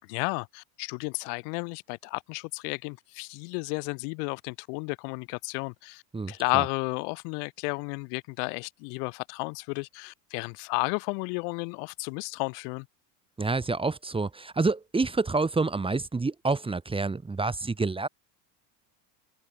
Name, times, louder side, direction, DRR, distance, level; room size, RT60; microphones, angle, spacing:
voice 1, 0.0-6.0 6.3-12.9, left 40 dB or more, 65° left, 3.4 m, -32 dB
voice 2, 6.1-6.7 13.4-18.1, right 3 dB, 10° right, 2.0 m, -28 dB
open air
supercardioid pair, 135°, 50 cm